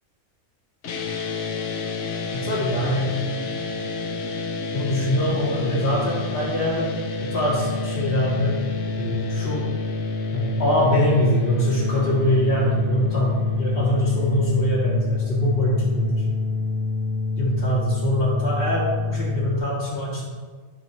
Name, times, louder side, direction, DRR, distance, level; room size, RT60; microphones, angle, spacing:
sound 1, 0.8-19.6, left 3 dB, 60° left, 1.0 m, -28 dB
voice 1, 2.3-3.2 4.7-6.9 7.2-8.5 9.0-9.7 10.3-16.3 17.4-20.2, equal, 40° left, -10 dB, 1.9 m, -23 dB
12.0 x 5.5 x 3.1 m, 1.5 s
omnidirectional pair, 1.5 m